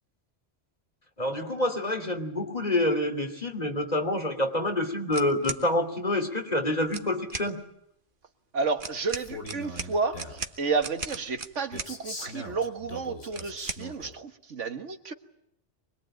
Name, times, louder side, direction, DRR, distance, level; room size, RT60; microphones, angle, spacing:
voice 1, 1.2-7.6, left 1 dB, 35° left, 5 dB, 3.0 m, -27 dB
sound 1, 5.1-5.6 6.8-7.5 8.8-11.9 13.3-13.8, right 4 dB, 45° right, 1.5 m, -37 dB
voice 2, 8.5-15.1, right 4 dB, 85° right, 8 dB, 1.8 m, -31 dB
Male speech man speaking, 9.1-10.5 11.7-14.1, left 1 dB, 90° left, 3.8 m, -41 dB
25.0 x 21.0 x 8.9 m, 0.77 s
omnidirectional pair, 1.2 m